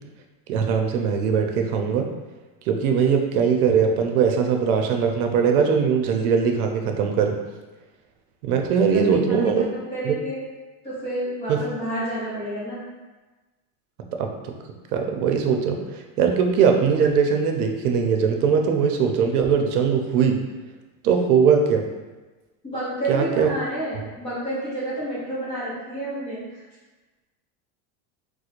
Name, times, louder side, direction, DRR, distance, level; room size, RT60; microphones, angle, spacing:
voice 1, 0.5-2.1 2.7-7.4 8.4-9.7 10.0-10.1 11.5-11.6 14.1-14.6 14.9-20.4 21.0-21.9 23.1-23.5, right 6 dB, 90° right, 3 dB, 0.6 m, -21 dB
voice 2, 8.9-9.4 9.7-10.4 10.8-12.8 22.6-26.6, right 1 dB, 15° left, -9 dB, 0.5 m, -30 dB
4.3 x 2.2 x 2.5 m, 1.2 s
supercardioid pair, 180°, 42 cm